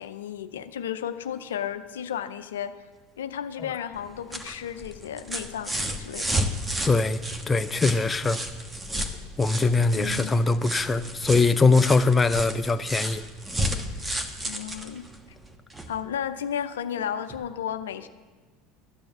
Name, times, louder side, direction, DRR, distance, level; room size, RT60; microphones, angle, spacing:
voice 1, 0.0-2.7 3.2-6.5 9.9-10.4 14.4-15.1 15.9-18.1, left 9 dB, 85° left, 0.5 m, -33 dB
sound 1, 3.9-16.0 17.3-17.4, right 1 dB, 15° right, 1.3 m, -32 dB
voice 2, 6.9-8.4 9.4-13.2, left 3 dB, 20° left, 0.6 m, -22 dB
13.0 x 7.0 x 7.9 m
hypercardioid pair, 80°, 0 cm